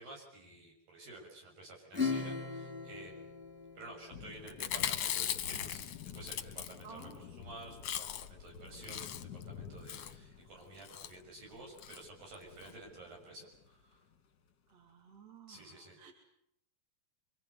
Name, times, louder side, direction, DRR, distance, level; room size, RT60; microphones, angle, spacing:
voice 1, 0.0-3.3 3.8-5.8 6.1-14.0 15.5-16.1, right 2 dB, 75° right, 0 dB, 8.1 m, -52 dB
Acoustic guitar / Strum, 1.9-4.8, left 4 dB, 5° right, 2.1 m, -39 dB
sound 1, 4.1-14.2, left 7 dB, 45° left, 1.5 m, -52 dB
Chewing mastication, 4.5-7.1 7.4-7.5 7.7-8.4 8.7-9.4 9.9-10.2 10.8-11.1 11.8-12.0 12.3-12.4 12.6-12.7, left 10 dB, 60° left, 1.6 m, -38 dB
voice 2, 6.8-7.3 14.7-16.1, right 6 dB, 45° right, 3 dB, 3.9 m, -54 dB
26.5 x 24.0 x 8.2 m, 0.74 s
omnidirectional pair, 4.0 m